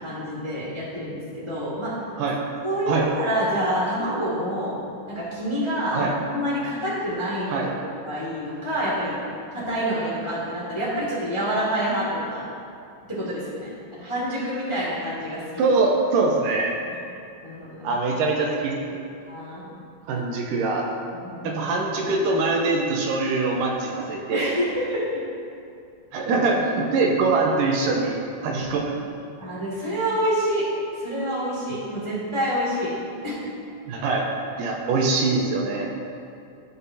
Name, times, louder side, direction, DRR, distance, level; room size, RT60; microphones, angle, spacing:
voice 1, 0.0-1.9 2.6-7.7 8.0-9.1 9.5-12.4 13.1-15.6 17.4-18.0 19.3-19.7 21.1-21.6 24.3-25.0 29.4-30.7 30.9-33.0 33.2-33.5, equal, 20° left, -7 dB, 0.9 m, -27 dB
voice 2, 15.6-16.7 17.8-19.0 20.1-20.8 21.4-24.5 26.1-28.2 28.4-28.9 33.8-34.3 34.6-35.9, right 3 dB, 80° right, -1 dB, 2.4 m, -23 dB
15.0 x 5.6 x 2.8 m, 2.4 s
omnidirectional pair, 4.0 m